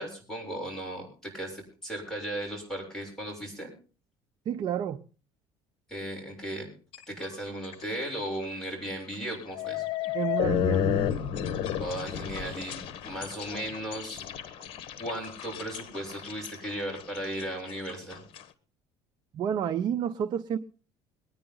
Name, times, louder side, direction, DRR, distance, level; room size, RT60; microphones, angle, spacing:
voice 1, 0.0-3.7 5.9-6.7 7.1-9.8 11.8-14.2 15.0-18.2, right 1 dB, 5° left, -2 dB, 7.2 m, -36 dB
voice 2, 4.5-5.0 10.1-11.1 19.3-20.6, right 9 dB, 45° right, 8 dB, 0.7 m, -30 dB
sound 1, 6.9-7.3 7.6-8.0 8.4-8.5 9.3-18.4, left 10 dB, 60° left, 1.3 m, -32 dB
22.5 x 10.0 x 3.9 m, 0.37 s
cardioid pair, 125°, 10 cm